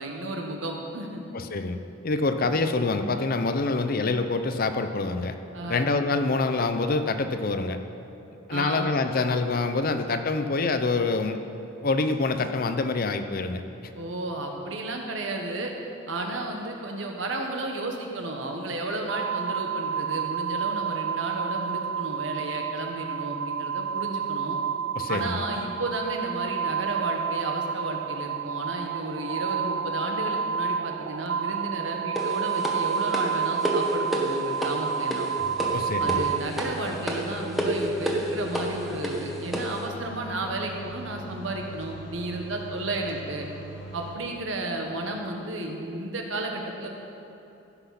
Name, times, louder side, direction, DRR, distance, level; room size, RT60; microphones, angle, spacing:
voice 1, 0.0-1.2 2.4-2.5 5.5-5.9 8.5-8.9 13.9-15.7 16.1-24.6 25.1-35.3 36.0-43.5 43.9-46.9, right 2 dB, 80° right, 2 dB, 1.4 m, -33 dB
voice 2, 1.3-1.8 2.0-5.4 5.7-7.8 8.5-11.4 11.8-13.6 24.9-25.4 35.7-36.3, left 3 dB, 50° left, 8 dB, 0.6 m, -26 dB
sound 1, 19.1-36.4, right 7 dB, 60° right, 0.3 m, -30 dB
sound 2, 32.2-39.8, equal, ahead, 1.3 m, -30 dB
sound 3, 35.4-44.1, right 2 dB, 75° left, 1.5 m, -42 dB
15.5 x 6.1 x 5.9 m, 2.9 s
head